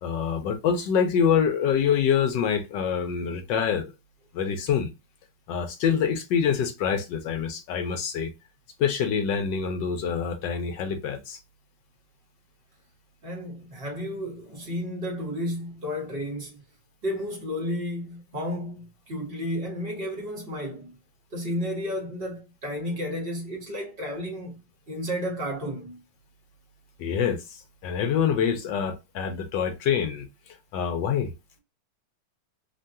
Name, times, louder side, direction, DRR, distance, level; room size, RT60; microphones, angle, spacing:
voice 1, 0.0-3.9 4.3-4.9 5.5-8.3 8.8-11.4 27.0-31.3, left 7 dB, 75° left, 1.1 m, -26 dB
voice 2, 13.2-16.6 17.0-20.9 21.3-24.6 24.9-26.0, equal, 35° right, 1.0 m, -32 dB
3.5 x 2.2 x 2.6 m
omnidirectional pair, 2.3 m